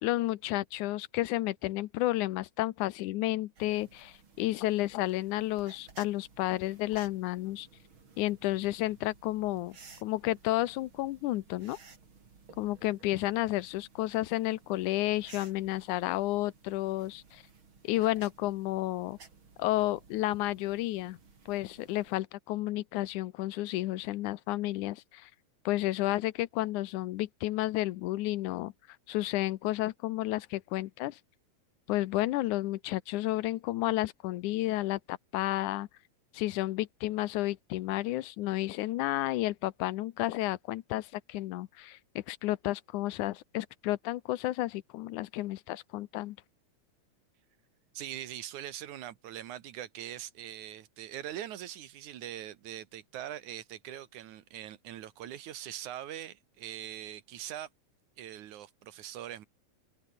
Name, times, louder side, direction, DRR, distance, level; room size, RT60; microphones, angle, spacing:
voice 1, 0.0-7.7 8.2-9.8 10.0-11.8 12.6-17.4 17.8-19.2 19.6-21.2 21.5-25.3 25.7-28.7 29.1-31.2 31.9-35.9 36.3-46.4, left 16 dB, 90° left, 2.3 m, -31 dB
sound 1, 3.6-22.1, right 4 dB, 40° right, 4.2 m, -57 dB
voice 2, 47.9-57.7 58.2-59.5, right 11 dB, 80° right, 2.8 m, -42 dB
omnidirectional pair, 3.4 m